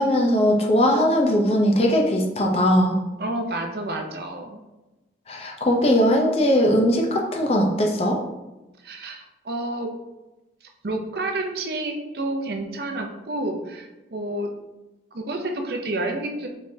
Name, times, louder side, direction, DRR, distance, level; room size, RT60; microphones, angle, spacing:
voice 1, 0.0-3.0 5.3-8.2, equal, 35° left, 1 dB, 0.6 m, -20 dB
voice 2, 3.2-4.6 8.8-9.9 10.8-14.5 15.1-16.5, right 2 dB, 65° right, 3 dB, 0.6 m, -29 dB
5.2 x 3.2 x 2.7 m, 1.0 s
head